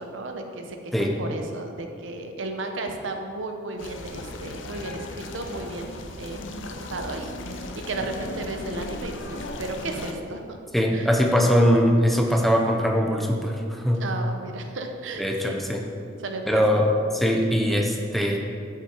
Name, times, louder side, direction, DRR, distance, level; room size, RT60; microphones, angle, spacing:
voice 1, 0.0-10.6 10.9-11.1 14.0-15.6 16.2-16.8, right 2 dB, 70° right, 4 dB, 0.8 m, -34 dB
sound 1, 3.8-10.1, left 2 dB, 70° left, 0.6 m, -37 dB
voice 2, 10.7-14.0 15.2-15.8 16.5-18.4, equal, ahead, 1 dB, 0.7 m, -21 dB
8.6 x 5.9 x 4.5 m, 2.3 s
head